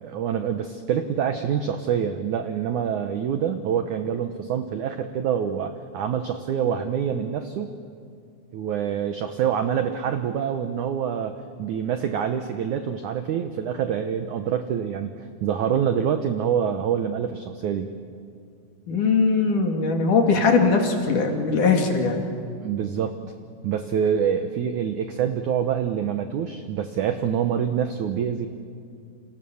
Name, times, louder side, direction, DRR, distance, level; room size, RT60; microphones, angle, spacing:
voice 1, 0.0-7.7 8.5-15.1 15.4-17.9 22.6-23.2 23.6-28.5, right 8 dB, 75° right, 8 dB, 1.8 m, -26 dB
voice 2, 18.9-22.2, left 4 dB, 55° left, 3 dB, 3.5 m, -20 dB
29.5 x 28.0 x 7.1 m, 2.3 s
omnidirectional pair, 4.8 m